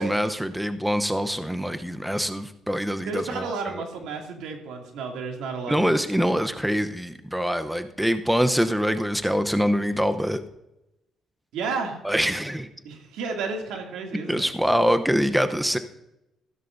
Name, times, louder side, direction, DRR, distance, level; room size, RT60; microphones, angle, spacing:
voice 1, 0.0-3.8 5.7-10.4 12.0-12.7 14.3-15.8, equal, 5° right, 9 dB, 0.8 m, -24 dB
voice 2, 3.0-5.9 6.3-6.4 11.5-12.0 12.8-14.5, right 4 dB, 90° right, 2 dB, 2.5 m, -32 dB
14.5 x 12.5 x 2.7 m, 0.88 s
cardioid pair, 90°, 0 cm